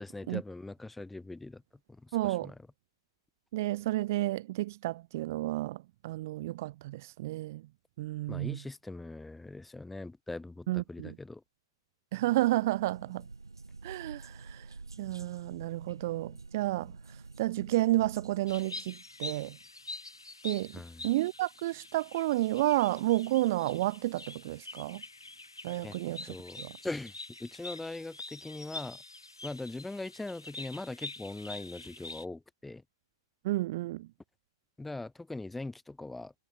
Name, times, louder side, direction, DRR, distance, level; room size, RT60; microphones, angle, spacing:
voice 1, 0.0-1.6 1.9-2.5 8.3-11.4 20.7-21.0 25.8-26.0 26.3-27.1 27.4-29.0 29.4-32.8 34.8-36.3, left 2 dB, 5° left, 0.9 m, -41 dB
voice 2, 2.1-2.5 3.5-7.6 8.0-8.6 10.7-11.2 12.1-13.3 13.8-14.7 15.0-16.9 17.4-19.6 20.4-25.0 25.6-26.8 33.4-34.1, right 17 dB, 45° right, 0.3 m, -31 dB
sound 1, 12.6-18.6, right 3 dB, 85° right, 1.8 m, -48 dB
sound 2, 18.5-32.3, left 2 dB, 85° left, 2.6 m, -46 dB
figure-of-eight pair, 115°, 2 cm